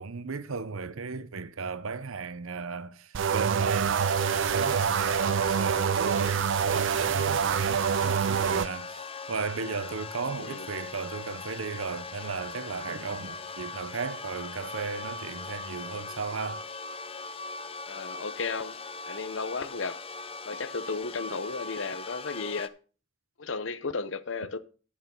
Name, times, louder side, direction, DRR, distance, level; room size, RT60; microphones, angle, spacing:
voice 1, 0.0-16.7, right 5 dB, 80° right, 0.8 m, -35 dB
sound 1, 3.1-8.7, right 7 dB, 60° right, 0.4 m, -26 dB
sound 2, 4.0-22.7, left 4 dB, 25° left, 0.7 m, -40 dB
voice 2, 17.9-18.8 19.1-20.0 20.4-22.7 23.4-24.6, left 4 dB, 65° left, 0.9 m, -34 dB
11.5 x 6.3 x 5.4 m
head